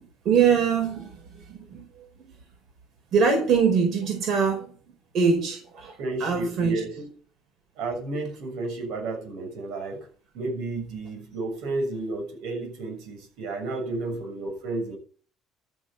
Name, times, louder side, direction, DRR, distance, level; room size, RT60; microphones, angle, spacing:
voice 1, 0.2-2.1 3.1-4.7 5.1-5.9 6.2-7.1, right 6 dB, 55° right, 2 dB, 4.7 m, -23 dB
voice 2, 6.0-6.9 7.8-10.1 10.3-15.0, right 2 dB, 85° right, 3 dB, 6.5 m, -32 dB
13.0 x 7.5 x 7.1 m, 0.42 s
cardioid pair, 140°, 0 cm